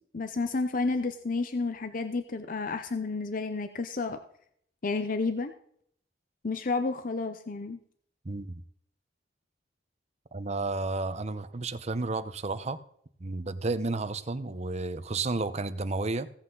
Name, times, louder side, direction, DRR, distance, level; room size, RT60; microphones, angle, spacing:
voice 1, 0.1-4.2 4.8-5.5 6.4-7.8, left 3 dB, 50° left, 0.7 m, -31 dB
voice 2, 8.2-8.6 10.3-12.8 13.2-16.3, right 3 dB, 40° right, 0.8 m, -32 dB
16.5 x 8.1 x 3.9 m
head